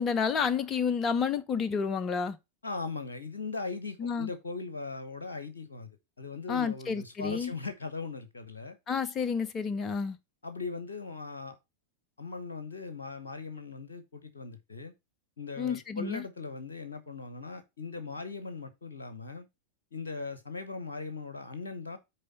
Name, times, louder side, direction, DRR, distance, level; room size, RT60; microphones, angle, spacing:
voice 1, 0.0-2.4 4.0-4.3 6.5-7.5 8.9-10.2 15.6-16.2, left 6 dB, 25° left, 0.8 m, -30 dB
voice 2, 2.6-8.8 10.4-11.6 12.2-14.9 15.4-19.5 19.9-22.0, left 4 dB, 70° left, 0.9 m, -39 dB
6.7 x 4.5 x 5.3 m
figure-of-eight pair, 90°, 0 cm